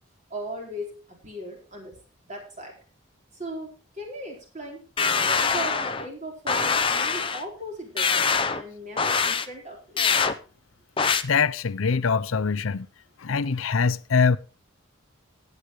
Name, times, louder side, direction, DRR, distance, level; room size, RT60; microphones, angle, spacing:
voice 1, 0.3-2.0 2.3-2.8 3.3-10.0, equal, 35° right, 4.3 m, -38 dB
sound 1, 5.0-6.1 6.5-7.4 8.0-8.6 9.0-9.5 10.0-10.3 11.0-11.2, left 5 dB, 25° left, 0.7 m, -23 dB
voice 2, 11.2-12.9 13.2-14.4, left 5 dB, 85° left, 0.6 m, -23 dB
18.0 x 8.1 x 3.1 m
head